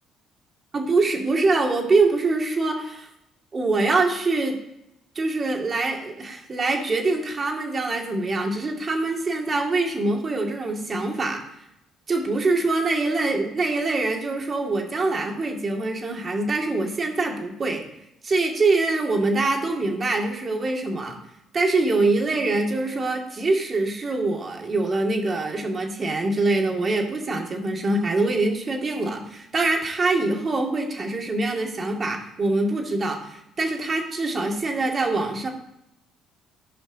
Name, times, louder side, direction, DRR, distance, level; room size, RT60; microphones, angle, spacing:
voice 1, 0.7-3.1 3.5-4.6 5.2-11.4 12.1-17.9 18.2-21.2 21.5-35.5, right 3 dB, 40° right, 2 dB, 2.2 m, -24 dB
14.0 x 5.4 x 3.9 m, 0.83 s
supercardioid pair, 65°, 0 cm